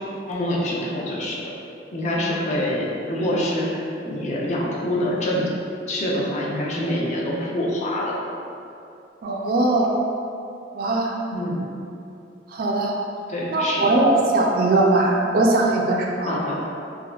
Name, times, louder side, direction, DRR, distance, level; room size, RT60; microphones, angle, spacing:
voice 1, 0.3-1.4 1.9-5.4 5.9-8.1 11.3-11.7 13.3-14.0 16.3-16.6, left 1 dB, 40° left, -4 dB, 0.4 m, -25 dB
voice 2, 9.2-9.9 10.7-11.2 12.5-13.0 13.5-16.3, right 2 dB, 55° right, 0 dB, 0.3 m, -20 dB
3.4 x 2.4 x 2.2 m, 2.7 s
head